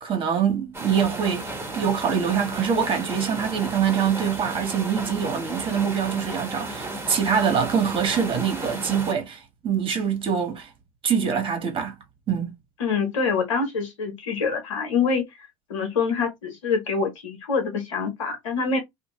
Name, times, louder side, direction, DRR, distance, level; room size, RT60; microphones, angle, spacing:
voice 1, 0.0-10.7 11.0-12.0 12.3-12.5, right 7 dB, 35° right, 1.4 m, -24 dB
sound 1, 0.7-9.1, right 2 dB, 15° right, 1.5 m, -34 dB
voice 2, 12.8-15.3 15.7-18.8, left 5 dB, 85° left, 1.1 m, -25 dB
2.6 x 2.4 x 3.1 m
hypercardioid pair, 90°, 16 cm